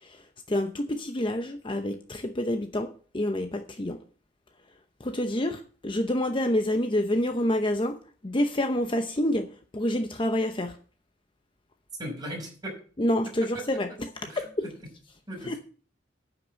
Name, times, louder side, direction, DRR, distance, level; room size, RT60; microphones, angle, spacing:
voice 1, 0.5-4.0 5.0-8.0 8.2-9.5 9.7-10.8 13.0-13.9 14.4-14.5 15.5-15.6, left 1 dB, 25° left, 0.8 m, -27 dB
voice 2, 12.0-12.8 13.4-14.0 14.2-14.8 15.3-15.6, right 1 dB, 20° right, 5.5 m, -38 dB
9.5 x 6.0 x 7.5 m
head